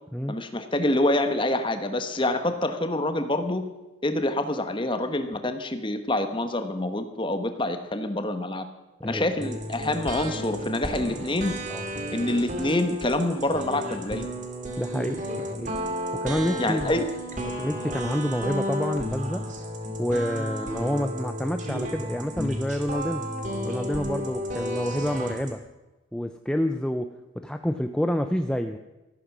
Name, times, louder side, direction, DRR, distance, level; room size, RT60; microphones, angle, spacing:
voice 1, 0.3-3.6 4.0-8.6 9.0-11.6 12.1-14.3 16.6-17.0, left 1 dB, 25° left, 8 dB, 1.2 m, -26 dB
sound 1, 9.4-25.5, equal, 40° right, 2.2 m, -32 dB
voice 2, 14.8-15.7 16.1-17.0 17.5-19.5 20.0-23.3 23.6-25.6 26.1-28.8, equal, 5° left, 7 dB, 0.5 m, -28 dB
14.0 x 13.5 x 6.1 m, 1.1 s
head